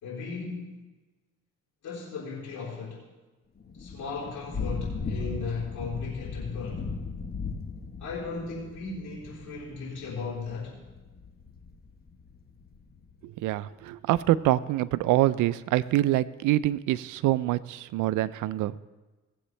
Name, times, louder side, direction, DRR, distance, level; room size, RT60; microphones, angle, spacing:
voice 1, 0.0-0.8 1.8-3.1 3.8-6.9 8.0-10.8, left 4 dB, 75° left, -7 dB, 3.7 m, -36 dB
Thunder / Rain, 3.6-13.1, left 4 dB, 30° left, 1.3 m, -37 dB
voice 2, 13.2-18.8, right 15 dB, 85° right, 16 dB, 0.5 m, -25 dB
18.0 x 7.9 x 3.3 m, 1.2 s
cardioid pair, 90°, 30 cm